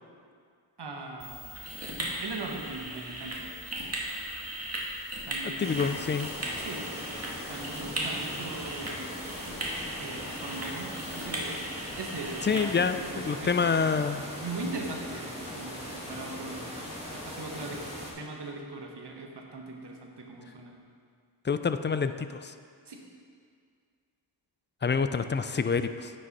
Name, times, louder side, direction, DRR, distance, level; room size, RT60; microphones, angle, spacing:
voice 1, 0.8-1.6 2.2-3.5 5.3-5.8 6.6-6.9 7.5-9.1 10.0-11.6 12.0-13.7 14.4-16.7 17.1-20.8 22.9-23.0, right 3 dB, 65° right, 1 dB, 1.2 m, -40 dB
sound 1, 1.2-13.0, right 1 dB, 35° right, 1.7 m, -37 dB
voice 2, 5.4-6.3 12.4-14.2 21.4-22.5 24.8-26.1, left 5 dB, 25° left, 10 dB, 0.4 m, -27 dB
sound 2, 5.6-18.1, equal, 15° right, 2.1 m, -40 dB
9.4 x 5.4 x 4.1 m, 2.2 s
cardioid pair, 40°, 44 cm